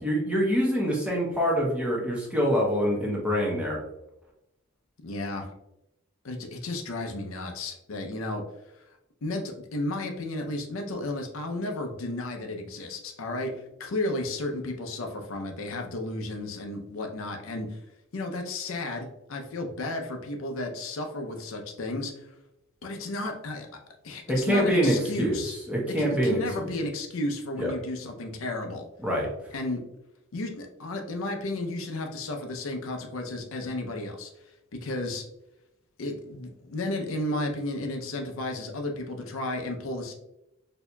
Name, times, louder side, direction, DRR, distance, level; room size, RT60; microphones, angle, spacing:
voice 1, 0.0-3.8 24.3-25.4 25.7-26.4 27.6-27.7 29.0-29.3, equal, 5° right, -3 dB, 0.8 m, -25 dB
voice 2, 5.0-5.5 6.2-8.4 8.7-8.9 9.2-17.8 18.1-22.3 22.8-25.5 25.9-28.9 29.5-29.8 30.3-34.3 34.7-35.2 36.0-40.1, left 2 dB, 80° left, 4 dB, 0.6 m, -33 dB
4.4 x 2.7 x 2.2 m, 0.87 s
head